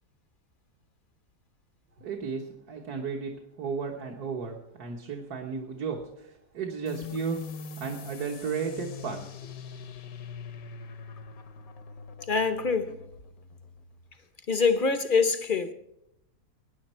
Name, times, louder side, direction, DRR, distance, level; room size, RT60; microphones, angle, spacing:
voice 1, 2.0-7.4 7.8-9.5, right 5 dB, 70° right, 1.8 m, -34 dB
sound 1, 6.9-14.1, left 5 dB, 65° left, 1.3 m, -42 dB
voice 2, 12.3-13.0 14.5-15.7, left 5 dB, 45° left, 0.7 m, -25 dB
20.0 x 9.7 x 4.4 m
omnidirectional pair, 1.7 m